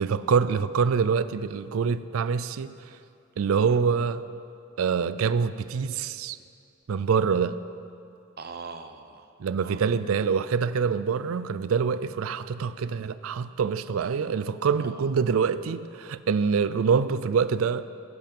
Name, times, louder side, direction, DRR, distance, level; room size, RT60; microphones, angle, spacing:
voice 1, 0.0-2.7 3.4-4.2 4.8-6.4 6.9-7.6 9.4-17.8, right 6 dB, 85° right, 15 dB, 0.4 m, -25 dB
voice 2, 8.4-10.0 14.0-14.3 14.8-15.0, right 4 dB, 45° right, 7 dB, 0.7 m, -43 dB
17.0 x 8.2 x 5.3 m, 2.5 s
head